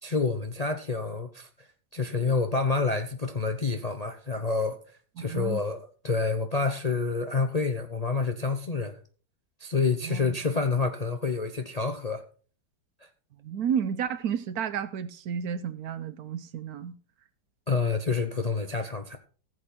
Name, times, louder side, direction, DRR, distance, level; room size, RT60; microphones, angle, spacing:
voice 1, 0.0-1.5 1.9-4.8 5.2-9.0 9.6-12.2 17.7-19.2, left 4 dB, 40° left, 0.6 m, -28 dB
voice 2, 5.2-5.6 10.0-10.4 13.4-17.0, right 8 dB, 65° right, 1.2 m, -31 dB
15.5 x 7.7 x 4.2 m
omnidirectional pair, 1.8 m